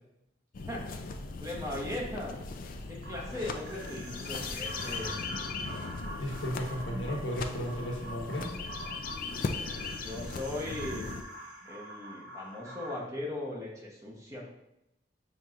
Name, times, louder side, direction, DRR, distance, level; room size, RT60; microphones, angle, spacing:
sound 1, 0.5-11.2, left 4 dB, 50° left, 0.3 m, -38 dB
voice 1, 1.4-2.4 2.9-5.2 10.0-11.1 11.7-14.5, left 1 dB, 20° right, -3 dB, 0.8 m, -38 dB
sound 2, 3.0-13.0, right 1 dB, 70° right, 0.6 m, -45 dB
voice 2, 6.2-8.5, equal, 90° left, 0 dB, 0.9 m, -34 dB
6.0 x 2.7 x 2.4 m, 0.85 s
head